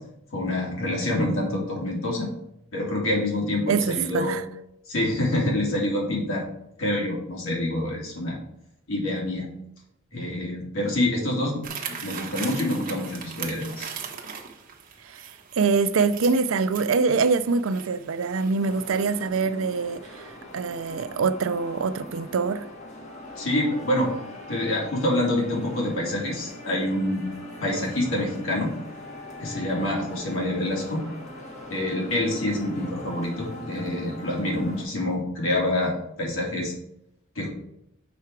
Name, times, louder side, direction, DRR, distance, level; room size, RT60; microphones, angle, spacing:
voice 1, 0.3-2.3 2.7-4.4 4.9-6.5 6.8-8.4 8.9-9.5 10.1-11.6 11.9-13.9 23.4-24.1 24.5-27.2 27.6-28.7 29.4-31.0 31.7-36.7 37.3-37.5, left 1 dB, 85° left, 2.8 m, -26 dB
voice 2, 3.7-4.4 15.0-22.7, right 4 dB, 75° right, 0.5 m, -24 dB
sound 1, 11.6-19.3, right 7 dB, 45° right, 1.1 m, -39 dB
sound 2, 18.6-34.8, left 1 dB, 35° left, 1.8 m, -41 dB
7.1 x 5.7 x 4.7 m
head